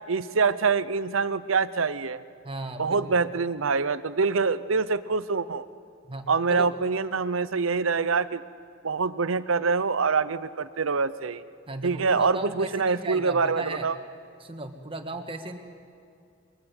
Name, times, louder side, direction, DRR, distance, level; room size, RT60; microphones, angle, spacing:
voice 1, 0.1-2.2 2.8-5.6 6.3-8.4 8.8-11.4 11.8-14.0, right 4 dB, 85° right, 15 dB, 0.8 m, -25 dB
voice 2, 2.4-3.2 6.1-6.7 11.7-13.9 14.4-15.6, right 2 dB, 25° right, 5 dB, 1.7 m, -36 dB
28.0 x 22.5 x 8.1 m, 2.4 s
head